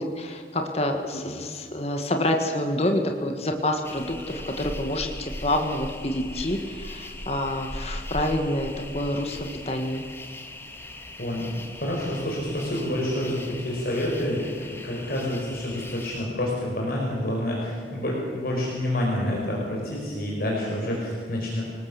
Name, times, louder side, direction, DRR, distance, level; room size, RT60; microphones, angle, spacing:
voice 1, 0.0-10.0, left 1 dB, 35° left, 4 dB, 1.7 m, -27 dB
sound 1, 3.8-16.3, left 1 dB, 15° left, 1.9 m, -39 dB
voice 2, 11.2-11.5 11.8-21.6, left 1 dB, 55° left, -3 dB, 5.1 m, -28 dB
27.5 x 19.0 x 7.0 m, 2.2 s
head